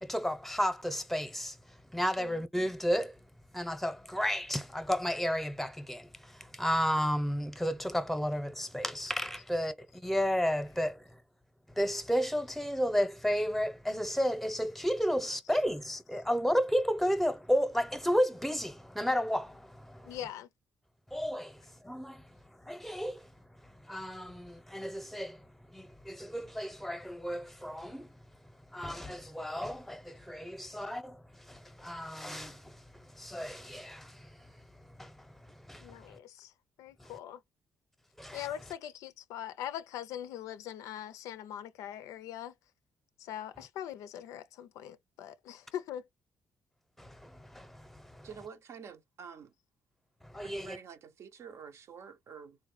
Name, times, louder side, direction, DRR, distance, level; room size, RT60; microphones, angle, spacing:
voice 1, 0.0-3.2 3.5-11.2 11.7-20.2 21.1-23.3 23.6-28.2 28.7-36.2 37.0-37.2 38.2-38.5 47.0-48.3 50.2-50.8, equal, 5° left, 0.7 m, -33 dB
voice 2, 20.0-20.5 35.8-36.5 36.8-37.4 38.3-42.5 43.2-46.0, left 11 dB, 85° left, 0.4 m, -42 dB
voice 3, 48.2-49.5 50.4-52.6, right 6 dB, 60° right, 0.6 m, -48 dB
3.7 x 2.1 x 3.1 m
cardioid pair, 75°, 5 cm